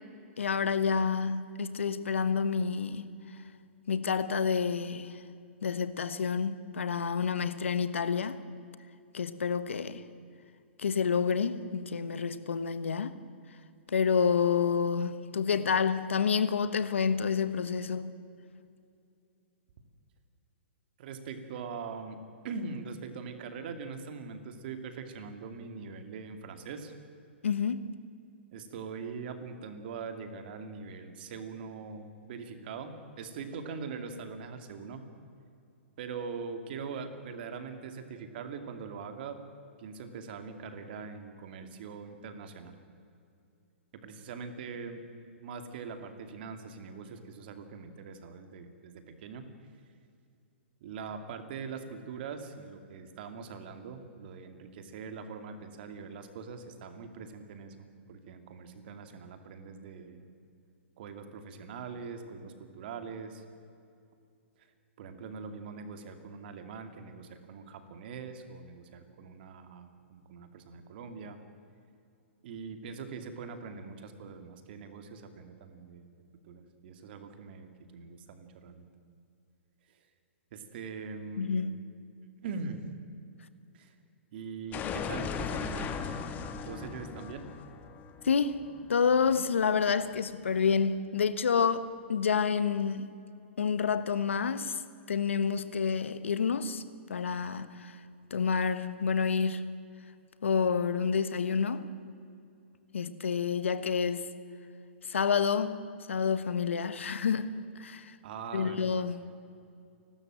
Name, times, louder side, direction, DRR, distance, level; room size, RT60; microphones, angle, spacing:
voice 1, 0.4-3.1 3.9-5.2 5.6-8.4 9.1-10.0 10.8-13.2 13.9-18.1 27.4-27.9 81.4-81.8 88.2-88.6 88.9-93.1 93.6-94.8 95.1-96.8 97.1-97.9 98.3-99.6 100.4-101.9 102.9-104.3 105.1-105.8 106.1-108.1 108.5-109.2, left 6 dB, 80° left, 1.2 m, -29 dB
voice 2, 21.0-22.2 22.4-26.9 28.5-32.9 33.2-35.0 36.0-39.4 39.8-42.8 43.9-45.0 45.4-49.4 50.8-57.7 58.1-60.3 61.0-63.4 65.0-71.4 72.4-76.1 76.4-78.9 80.5-81.6 82.4-82.8 83.7-83.9 84.3-85.9 86.6-87.4 108.2-109.3, right 5 dB, 50° right, 2.6 m, -42 dB
sound 1, 84.7-89.5, left 6 dB, 25° left, 1.8 m, -37 dB
29.0 x 13.0 x 7.7 m
hypercardioid pair, 130°, 7 cm